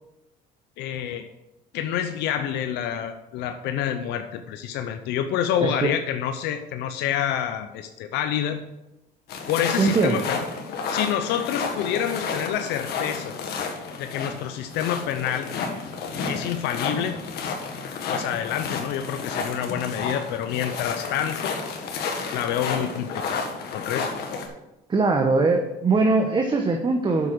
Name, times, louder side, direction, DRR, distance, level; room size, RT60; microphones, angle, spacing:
voice 1, 0.8-1.3 1.7-8.6 9.5-10.4 10.9-13.4 14.0-15.5 16.2-17.2 18.1-21.5 22.3-23.5 23.7-24.1, left 9 dB, 90° left, 8 dB, 0.7 m, -27 dB
voice 2, 5.6-5.9 9.8-10.2 24.9-27.3, right 3 dB, 25° right, 3 dB, 1.0 m, -21 dB
sound 1, 9.3-24.5, left 5 dB, 75° left, 1.8 m, -31 dB
8.0 x 7.1 x 6.3 m, 0.94 s
cardioid pair, 110°, 17 cm